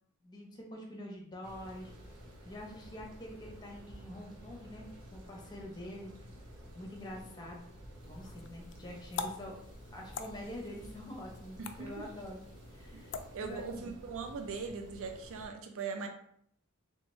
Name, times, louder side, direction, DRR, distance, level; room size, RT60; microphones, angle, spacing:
voice 1, 0.2-1.9 2.4-6.1 6.7-7.6 8.0-9.5 9.9-12.4 12.7-13.2 13.4-14.0, left 1 dB, 20° left, -1 dB, 0.8 m, -46 dB
sound 1, 1.4-15.5, equal, 80° right, 1.0 m, -52 dB
sound 2, 8.0-13.8, left 6 dB, 55° left, 0.3 m, -46 dB
voice 2, 11.6-11.9 12.9-13.1 13.3-16.1, right 5 dB, 60° right, 5 dB, 0.4 m, -40 dB
3.5 x 2.9 x 3.1 m, 0.68 s
head